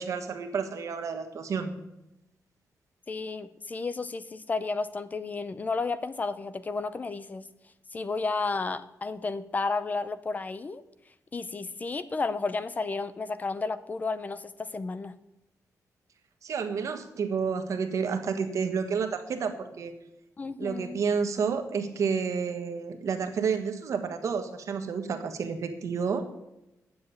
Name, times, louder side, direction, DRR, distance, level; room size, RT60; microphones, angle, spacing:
voice 1, 0.0-1.7 16.4-19.9 20.6-26.2, right 6 dB, 55° right, 6 dB, 1.4 m, -30 dB
voice 2, 3.1-7.5 7.9-10.8 11.3-15.2 20.4-21.0, left 3 dB, 25° left, 14 dB, 0.5 m, -32 dB
9.4 x 7.4 x 8.4 m, 0.91 s
wide cardioid pair, 170°, 6 cm